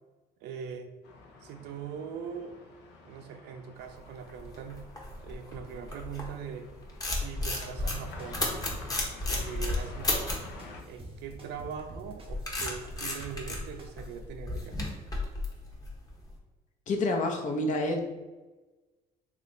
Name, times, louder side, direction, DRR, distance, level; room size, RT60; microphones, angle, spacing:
voice 1, 0.4-0.9 1.4-2.6 3.0-4.8 5.2-6.7 7.1-8.5 9.2-10.3 10.9-14.8, right 7 dB, 85° right, 6 dB, 0.5 m, -41 dB
sound 1, 1.0-10.8, left 3 dB, 85° left, 0.7 m, -49 dB
sound 2, 4.1-6.4 6.8-10.5 11.8-16.2, left 2 dB, 20° left, 0.9 m, -33 dB
sound 3, 7.8-14.2, right 2 dB, 35° right, 0.7 m, -47 dB
voice 2, 16.9-18.1, left 2 dB, 50° left, 3 dB, 0.7 m, -28 dB
3.1 x 2.4 x 3.8 m, 1.2 s
cardioid pair, 110°, 17 cm